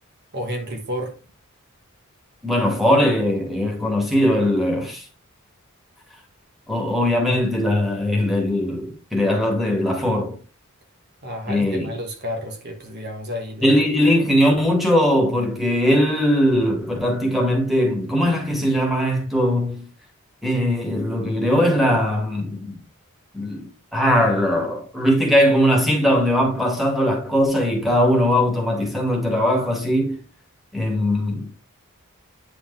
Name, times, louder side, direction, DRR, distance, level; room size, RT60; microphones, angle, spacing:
voice 1, 0.3-1.2 11.2-13.8, equal, 50° right, 1.5 m, -31 dB
voice 2, 2.4-5.0 6.7-10.4 11.5-11.9 13.6-19.9 20.4-22.8 23.3-30.2 30.7-31.5, equal, ahead, 2.1 m, -20 dB
9.1 x 5.1 x 3.4 m
head